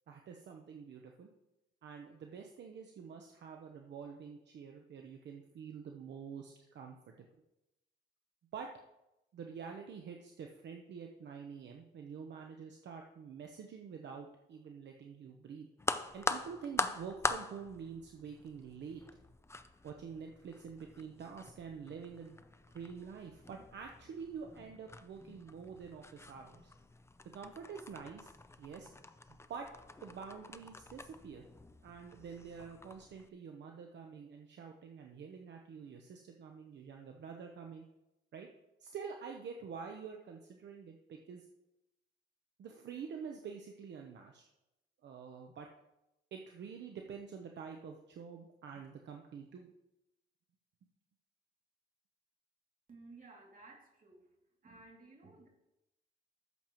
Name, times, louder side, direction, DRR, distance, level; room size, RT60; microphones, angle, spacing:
voice 1, 0.1-1.3 1.8-7.3 8.5-8.7 9.3-15.7 16.1-19.0 19.8-22.4 22.7-26.7 27.3-28.3 28.6-28.9 29.3-29.7 30.0-31.5 31.8-37.9 38.3-38.5 38.8-41.4 42.6-44.4 45.0-45.7 46.3-49.7, right 6 dB, 60° right, 3 dB, 1.0 m, -47 dB
sound 1, 15.8-33.3, left 2 dB, 15° left, 0.6 m, -43 dB
voice 2, 52.9-54.3 54.6-55.5, right 3 dB, 40° right, -1 dB, 2.8 m, -56 dB
13.5 x 7.2 x 3.1 m, 0.91 s
cardioid pair, 90°, 20 cm